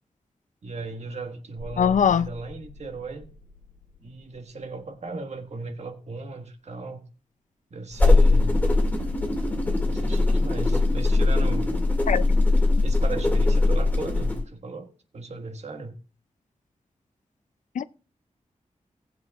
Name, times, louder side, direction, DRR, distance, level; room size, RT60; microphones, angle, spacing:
voice 1, 0.6-3.3 4.0-7.1 7.7-8.5 9.8-11.7 12.8-15.9, right 3 dB, 60° right, 1.5 m, -37 dB
sound 1, 1.6-5.1 7.9-11.2, left 1 dB, 5° right, 5.0 m, -42 dB
voice 2, 1.8-2.3 12.1-12.4 17.8-17.9, left 8 dB, 80° left, 0.4 m, -21 dB
sound 2, 7.9-14.4, left 2 dB, 15° left, 2.1 m, -21 dB
18.5 x 7.9 x 2.4 m
wide cardioid pair, 125°, 13 cm